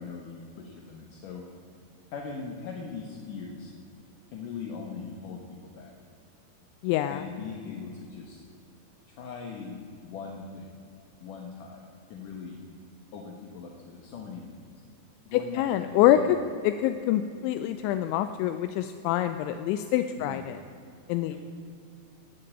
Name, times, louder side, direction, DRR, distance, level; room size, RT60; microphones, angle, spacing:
voice 1, 0.0-1.5 2.1-3.7 4.3-5.4 5.8-5.9 7.1-8.4 9.1-10.7 11.2-11.8 12.1-12.6 13.1-14.7 15.2-16.3 20.2-20.5 21.3-21.4, left 5 dB, 65° left, 1 dB, 2.2 m, -40 dB
voice 2, 6.8-7.2 15.3-16.4 16.6-20.6 21.1-21.3, left 12 dB, 85° left, 9 dB, 2.9 m, -25 dB
18.0 x 8.7 x 8.5 m, 2.6 s
omnidirectional pair, 5.3 m